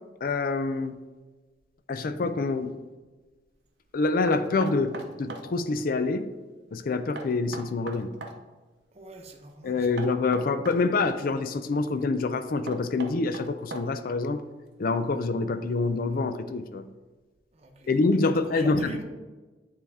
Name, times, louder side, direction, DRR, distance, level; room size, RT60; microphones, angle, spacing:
voice 1, 0.2-1.0 1.9-2.7 3.9-6.3 6.7-8.1 9.6-14.4 14.8-16.9 17.9-19.0, left 3 dB, 55° left, 0.4 m, -26 dB
Knock, 4.3-5.5 7.2-8.4 10.0-11.2 12.7-14.1, right 3 dB, 75° right, 0.7 m, -39 dB
voice 2, 8.9-9.7 17.6-17.9 18.4-19.0, right 2 dB, 35° right, 0.8 m, -42 dB
9.4 x 3.4 x 3.5 m
head